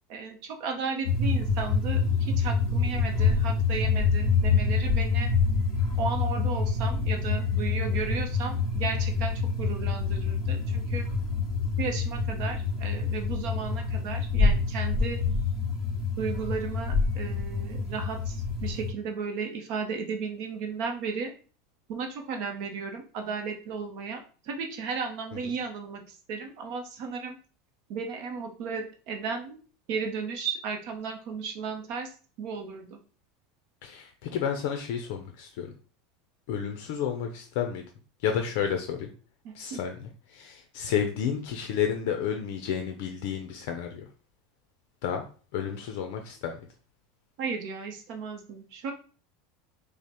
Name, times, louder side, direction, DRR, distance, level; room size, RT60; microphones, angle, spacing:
voice 1, 0.1-5.3 6.0-11.0 11.8-15.2 16.2-21.3 21.9-24.2 24.5-26.0 26.3-27.4 27.9-29.6 29.9-32.1 32.4-32.9 39.4-39.8 47.4-48.9, right 5 dB, 45° right, 4 dB, 0.6 m, -34 dB
sound 1, 1.0-18.9, left 4 dB, 30° left, 1.8 m, -26 dB
voice 2, 33.8-35.7 36.5-37.8 38.2-39.1 39.5-44.1 45.0-45.2 45.5-46.6, left 8 dB, 55° left, 4 dB, 0.5 m, -31 dB
5.3 x 2.1 x 2.9 m, 0.39 s
supercardioid pair, 170°, 0 cm